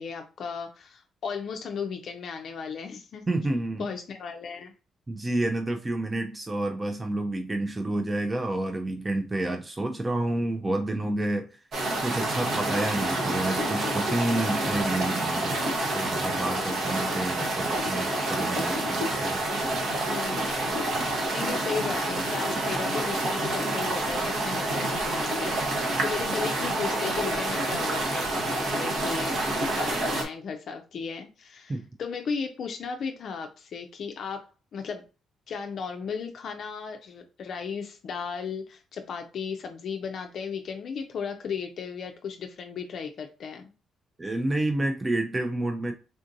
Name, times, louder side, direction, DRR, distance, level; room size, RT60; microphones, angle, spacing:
voice 1, 0.0-3.2 3.8-4.7 20.0-20.6 21.3-29.4 29.7-35.0 35.5-43.7, left 6 dB, 60° left, 4 dB, 0.4 m, -35 dB
voice 2, 3.3-3.9 5.1-11.6 12.0-19.4 31.7-31.8 44.2-45.9, right 2 dB, 20° right, 4 dB, 0.4 m, -29 dB
sound 1, 11.7-30.2, right 2 dB, 60° right, 1.0 m, -28 dB
3.6 x 2.6 x 2.5 m, 0.34 s
cardioid pair, 90°, 0 cm